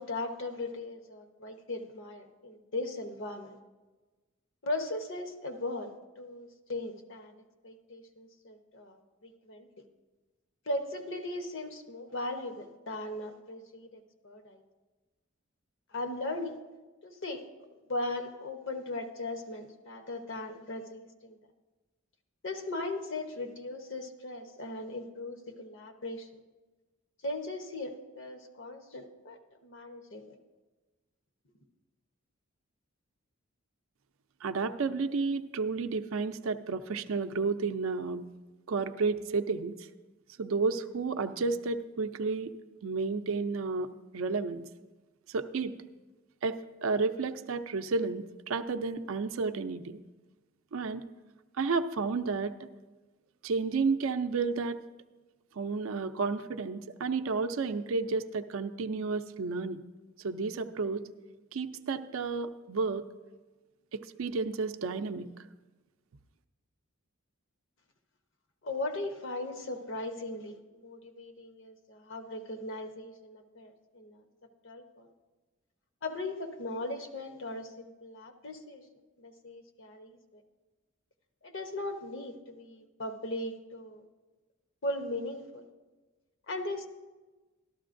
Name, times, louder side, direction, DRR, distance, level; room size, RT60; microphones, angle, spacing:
voice 1, 0.0-3.6 4.6-7.3 7.6-9.7 10.7-14.6 15.9-16.6 17.0-17.4 17.9-21.4 22.4-26.3 27.2-30.2 68.6-74.2 74.6-75.1 76.0-78.8 79.2-80.4 81.4-84.0 84.8-85.6 86.5-86.9, left 2 dB, 60° left, 5 dB, 0.9 m, -38 dB
voice 2, 34.4-38.2 38.7-39.9 40.4-42.5 42.8-44.7 45.3-45.8 46.4-50.0 50.7-51.0 51.6-52.7 53.4-54.8 55.6-59.8 60.2-61.1 61.5-63.0 63.9-65.3, right 4 dB, 70° right, 9 dB, 0.5 m, -31 dB
13.0 x 12.5 x 2.5 m, 1.2 s
head